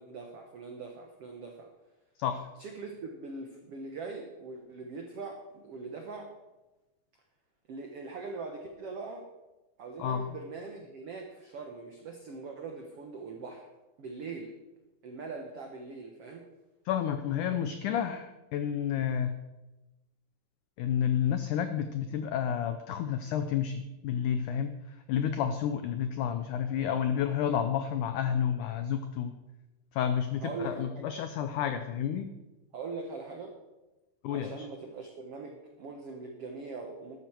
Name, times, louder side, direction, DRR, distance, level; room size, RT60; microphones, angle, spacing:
voice 1, 0.0-1.7 2.6-6.3 7.7-9.2 9.8-13.7 14.0-14.5 15.0-16.4 30.4-31.2 32.7-33.5 34.3-37.2, right 3 dB, 85° right, 3 dB, 1.3 m, -41 dB
voice 2, 16.9-19.3 20.8-29.3 29.9-32.3 34.2-34.7, left 8 dB, 90° left, 9 dB, 1.7 m, -30 dB
13.0 x 12.0 x 4.5 m, 1.1 s
omnidirectional pair, 4.5 m